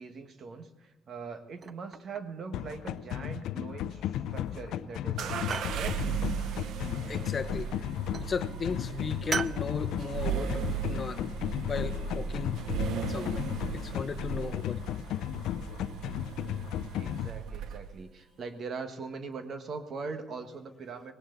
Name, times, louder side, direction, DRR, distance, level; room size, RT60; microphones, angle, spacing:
voice 1, 0.0-5.4 5.7-6.0 16.9-21.1, right 4 dB, 55° right, 1.6 m, -41 dB
sound 1, 1.6-2.4 2.7-3.3 4.1-4.6 4.9-5.8 7.2-7.7 8.1-8.4 9.3-9.6, right 5 dB, 40° right, 0.4 m, -38 dB
sound 2, 2.5-17.3, left 11 dB, 85° left, 0.4 m, -35 dB
sound 3, 5.2-18.0, right 8 dB, 80° right, 0.8 m, -37 dB
voice 2, 7.1-7.7 8.2-11.3 11.6-12.6 12.9-13.4 13.7-14.8, left 5 dB, 45° left, 0.8 m, -36 dB
19.0 x 17.5 x 4.0 m
cardioid pair, 90°, 0 cm